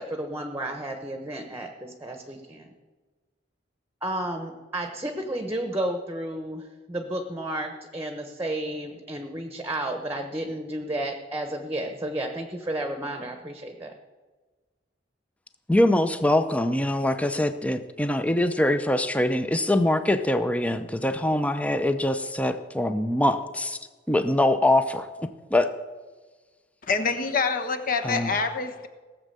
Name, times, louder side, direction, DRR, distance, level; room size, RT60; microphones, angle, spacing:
voice 1, 0.0-2.7 4.0-13.9, right 1 dB, 15° right, 4 dB, 1.1 m, -32 dB
voice 2, 15.7-23.8 24.1-25.1 25.5-25.7 28.0-28.3, left 1 dB, 10° left, 9 dB, 0.6 m, -23 dB
voice 3, 26.9-28.9, left 4 dB, 50° left, 6 dB, 1.3 m, -26 dB
17.5 x 7.4 x 6.8 m, 1.3 s
head